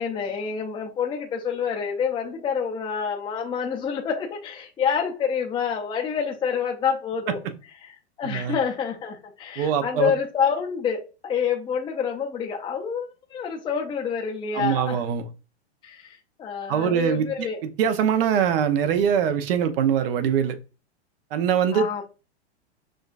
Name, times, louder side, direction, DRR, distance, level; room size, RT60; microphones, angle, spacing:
voice 1, 0.0-7.4 7.8-15.0 15.8-17.6 21.7-22.0, left 7 dB, 15° left, 0.6 m, -27 dB
voice 2, 8.2-8.6 9.6-10.1 14.5-15.3 16.7-17.5 17.8-20.6 21.3-22.0, right 8 dB, 55° right, 0.8 m, -23 dB
6.2 x 2.3 x 2.4 m
hypercardioid pair, 120°, 33 cm